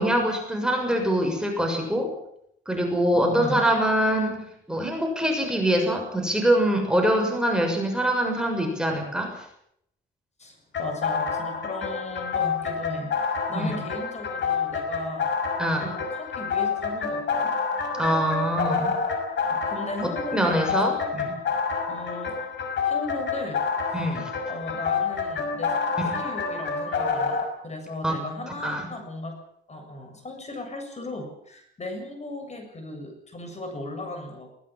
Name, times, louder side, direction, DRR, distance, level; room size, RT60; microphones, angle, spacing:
voice 1, 0.0-2.1 2.6-9.3 13.5-13.8 15.6-15.9 18.0-19.0 20.3-21.3 23.9-24.2 26.0-26.2 28.0-28.1 28.6-28.9, right 1 dB, 5° right, 2 dB, 6.7 m, -24 dB
voice 2, 3.1-3.7 10.4-15.3 15.8-17.5 19.5-21.1 21.9-22.5 22.9-24.0 24.5-29.3 29.7-34.5, left 2 dB, 35° left, 5 dB, 7.4 m, -36 dB
sound 1, 10.7-27.4, left 5 dB, 65° left, 5.9 m, -28 dB
20.5 x 19.5 x 7.6 m, 0.72 s
cardioid pair, 90°, 20 cm